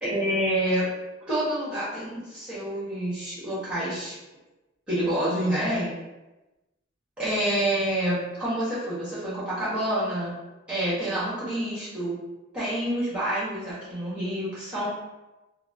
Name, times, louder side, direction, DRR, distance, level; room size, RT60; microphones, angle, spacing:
voice 1, 0.0-0.9 1.3-4.2 4.9-5.9 7.2-10.3 10.7-12.1 12.5-14.9, right 1 dB, 5° right, -10 dB, 1.3 m, -27 dB
3.2 x 2.4 x 2.6 m, 1.0 s
head